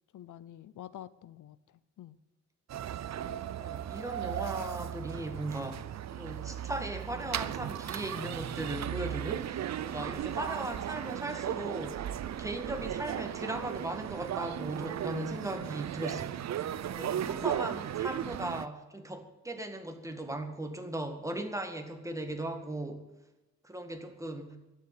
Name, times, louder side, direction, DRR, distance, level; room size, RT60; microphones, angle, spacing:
voice 1, 0.1-2.2 3.3-3.6 17.0-17.5, left 12 dB, 85° left, 17 dB, 0.6 m, -49 dB
sound 1, 2.7-18.7, right 11 dB, 60° right, 0.6 m, -36 dB
voice 2, 3.6-5.8 6.1-16.4 16.9-23.1 23.6-24.6, right 1 dB, 10° right, 5 dB, 1.8 m, -38 dB
11.5 x 10.0 x 9.3 m, 1.0 s
wide cardioid pair, 135°, 30 cm